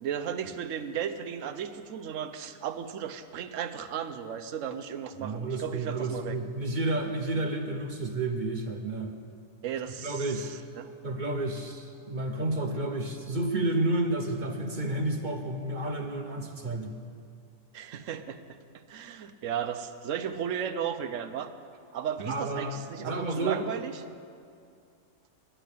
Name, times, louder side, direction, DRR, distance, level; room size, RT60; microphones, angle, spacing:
voice 1, 0.0-6.4 9.6-10.9 17.7-18.4 18.9-21.5 21.9-24.0, right 8 dB, 65° right, 10 dB, 0.9 m, -35 dB
voice 2, 5.2-9.1 10.0-10.5 11.0-16.9 22.3-23.7, right 2 dB, 45° right, 4 dB, 0.7 m, -31 dB
10.5 x 10.0 x 8.3 m, 2.4 s
omnidirectional pair, 1.6 m